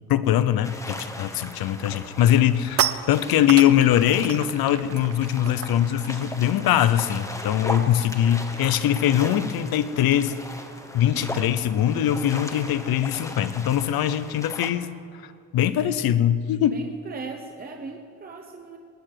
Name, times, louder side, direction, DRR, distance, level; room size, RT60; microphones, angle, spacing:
voice 1, 0.1-2.8 3.1-10.3 10.9-15.0 15.5-16.8, left 11 dB, 75° left, 14 dB, 0.8 m, -22 dB
sound 1, 0.6-14.7, left 1 dB, 10° left, 0.9 m, -38 dB
sound 2, 1.4-1.6 2.0-8.0 8.2-8.5 8.8-13.8, right 9 dB, 40° right, 0.5 m, -34 dB
voice 2, 16.6-18.8, right 4 dB, 25° right, 3 dB, 0.9 m, -38 dB
19.5 x 6.8 x 8.1 m, 2.2 s
cardioid pair, 155°, 37 cm